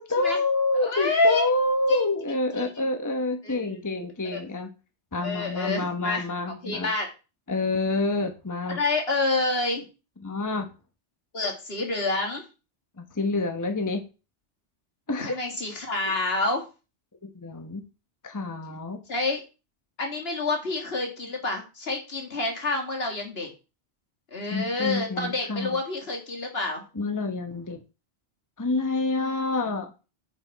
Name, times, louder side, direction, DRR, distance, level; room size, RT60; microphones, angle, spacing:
voice 1, 0.0-4.7 5.1-6.9 7.5-8.8 10.2-10.7 13.0-14.0 15.1-15.4 17.2-17.8 18.2-19.0 24.5-25.8 26.9-27.8 28.6-30.1, left 2 dB, 20° left, 5 dB, 0.9 m, -28 dB
voice 2, 0.8-1.5 1.9-2.1 2.6-2.7 3.4-4.1 4.3-4.4 5.2-6.2 6.6-7.1 8.6-9.9 11.3-12.4 15.2-16.6 19.1-19.4 20.0-23.5 24.3-26.8 29.2-29.4, left 2 dB, 55° left, 2 dB, 2.3 m, -28 dB
9.4 x 5.2 x 4.6 m, 0.31 s
omnidirectional pair, 1.2 m